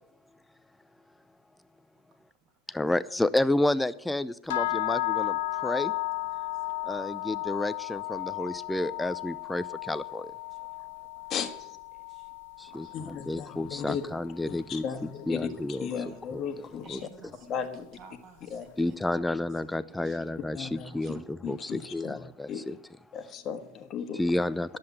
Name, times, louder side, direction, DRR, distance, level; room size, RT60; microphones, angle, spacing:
voice 1, 2.7-5.9 6.8-10.3 12.6-14.8 15.3-16.4 16.9-17.0 18.8-22.8 24.1-24.8, left 1 dB, 5° left, 0.6 m, -30 dB
sound 1, 4.5-14.6, left 20 dB, 70° left, 0.4 m, -34 dB
voice 2, 6.2-6.5 10.5-10.9 11.2-11.3 11.6-11.7 11.9-12.3 12.7-13.2 13.9-14.0 16.8-17.7 17.9-19.3 19.9-20.3 20.6-21.1 21.6-21.7, right 5 dB, 45° right, 2.5 m, -54 dB
voice 3, 12.9-14.1 14.5-17.0 17.5-17.9 18.5-18.7 20.5-22.8 23.1-24.2, left 7 dB, 40° left, 1.6 m, -36 dB
11.0 x 7.8 x 9.4 m
hypercardioid pair, 95°, 0 cm